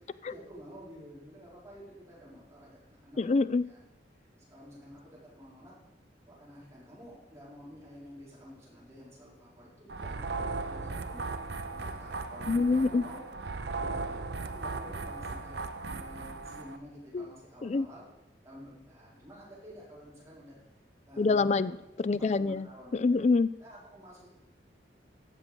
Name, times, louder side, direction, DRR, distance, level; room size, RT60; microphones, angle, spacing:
voice 1, 0.2-3.2 3.6-3.8 4.5-5.7 6.3-11.2 11.7-13.2 13.6-15.5 15.8-18.0 18.4-20.5 21.1-21.7 22.1-23.2 23.6-24.3, equal, 15° right, -8 dB, 4.7 m, -50 dB
voice 2, 3.2-3.6 12.5-13.0 17.1-17.3 17.6-17.9 21.2-22.7 22.9-23.5, left 3 dB, 40° left, 16 dB, 0.4 m, -26 dB
sound 1, 9.9-16.8, right 3 dB, 65° right, 0.7 m, -37 dB
15.0 x 7.2 x 5.3 m, 0.93 s
head